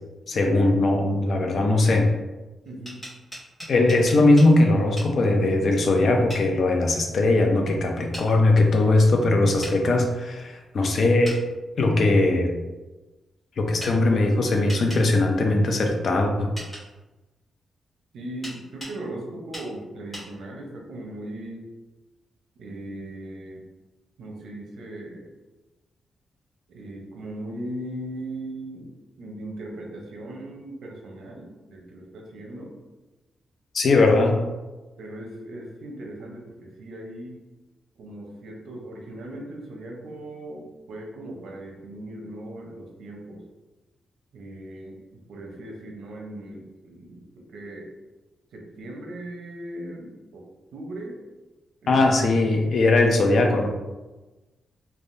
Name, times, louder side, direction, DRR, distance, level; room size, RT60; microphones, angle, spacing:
voice 1, 0.3-2.1 3.7-11.4 11.8-12.5 13.6-16.5 33.7-34.3 51.9-53.7, left 2 dB, 50° left, 3 dB, 0.4 m, -20 dB
voice 2, 2.6-3.0 18.1-21.7 22.6-23.7 24.2-25.3 26.7-32.7 33.9-34.0 35.0-37.4 38.0-43.4 44.3-47.9 48.5-50.4 50.7-51.2 51.8-52.0, right 1 dB, 90° right, 0 dB, 0.6 m, -38 dB
sound 1, 2.7-4.5 5.0-5.1 6.3-6.5 8.1-8.3 9.6-9.8 11.2-11.4 13.8-13.9 14.7-15.0 16.6-16.8 18.4-19.0 19.5-19.7 20.1-20.3, equal, 10° left, 1.0 m, -38 dB
3.3 x 2.2 x 2.6 m, 1.1 s
wide cardioid pair, 165°, 0 cm